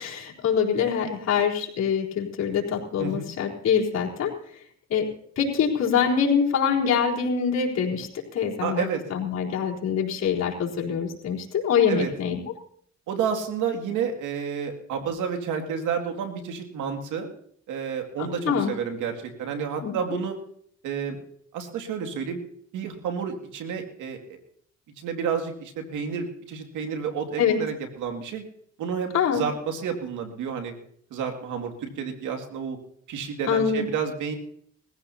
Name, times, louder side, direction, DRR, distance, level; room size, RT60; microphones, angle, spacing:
voice 1, 0.0-4.3 4.9-5.1 5.4-12.4 18.4-18.7 19.8-19.9 27.4-27.6 29.1-29.4 33.5-33.9, left 7 dB, 60° left, -3 dB, 4.0 m, -24 dB
voice 2, 8.6-9.0 11.9-12.1 13.1-17.3 17.7-20.4 20.8-21.2 21.5-22.4 22.7-24.4 25.0-28.4 28.8-30.7 31.1-32.8 33.1-34.3, right 6 dB, 90° right, 5 dB, 2.4 m, -30 dB
21.0 x 15.5 x 2.8 m, 0.62 s
cardioid pair, 90°, 30 cm